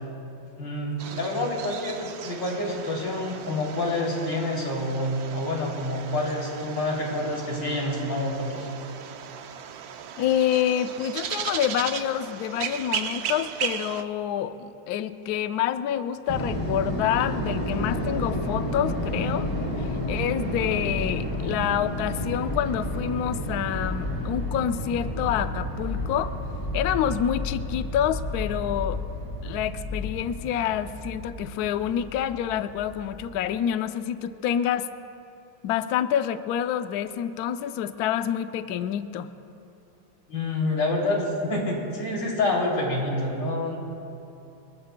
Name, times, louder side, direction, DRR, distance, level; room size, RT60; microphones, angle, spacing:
voice 1, 0.6-8.7 40.3-43.8, left 2 dB, 55° left, -2 dB, 3.6 m, -27 dB
sound 1, 1.0-14.0, right 8 dB, 70° right, 0.9 m, -36 dB
voice 2, 10.2-19.5 19.8-26.4 26.7-29.0 29.4-34.9 35.6-39.3, left 10 dB, 85° left, 10 dB, 0.8 m, -27 dB
sound 2, 16.3-33.4, left 1 dB, 15° left, 3.1 m, -31 dB
29.0 x 20.0 x 2.2 m, 2.8 s
omnidirectional pair, 2.3 m